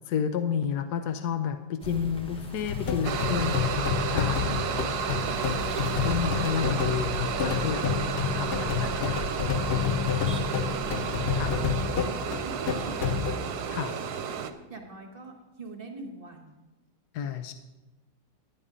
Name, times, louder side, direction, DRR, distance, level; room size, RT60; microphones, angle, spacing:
voice 1, 0.1-4.5 6.0-7.9 8.3-9.3 11.3-11.6 13.7-14.0 17.1-17.5, left 8 dB, 75° left, 8 dB, 1.1 m, -30 dB
sound 1, 1.8-12.0, right 1 dB, 5° left, 0.5 m, -42 dB
sound 2, 2.7-13.4, left 7 dB, 90° left, 0.5 m, -29 dB
sound 3, 3.0-14.5, right 7 dB, 70° right, 1.2 m, -32 dB
voice 2, 4.5-5.9 10.0-11.7 12.0-13.4 14.7-16.6, right 2 dB, 40° right, 3 dB, 1.1 m, -44 dB
11.0 x 9.5 x 3.7 m, 1.1 s
omnidirectional pair, 1.8 m